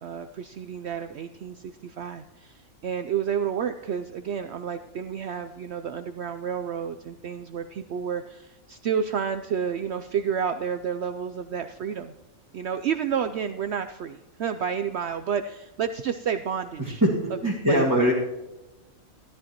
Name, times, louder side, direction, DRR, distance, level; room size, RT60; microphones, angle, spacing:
voice 1, 0.0-12.1 12.5-17.0 17.7-17.8, right 7 dB, 65° right, 8 dB, 0.7 m, -30 dB
voice 2, 16.8-18.1, equal, 15° right, -5 dB, 1.9 m, -22 dB
13.5 x 13.0 x 2.9 m, 1.0 s
omnidirectional pair, 1.4 m